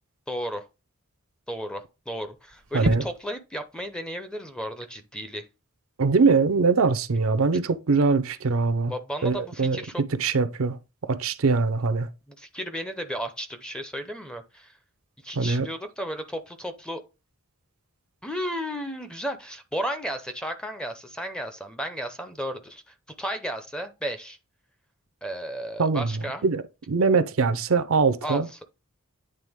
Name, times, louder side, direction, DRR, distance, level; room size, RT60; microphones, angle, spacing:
voice 1, 0.3-0.7 1.5-5.5 8.9-10.0 12.4-14.8 15.2-17.0 18.2-24.4 25.2-26.4 28.2-28.6, equal, 5° left, 0.6 m, -34 dB
sound 1, 2.2-19.4, right 2 dB, 85° right, 0.9 m, -41 dB
voice 2, 6.0-8.9 9.2-12.1 15.4-15.7 25.8-28.5, right 4 dB, 65° right, 0.6 m, -23 dB
8.9 x 3.4 x 3.5 m
head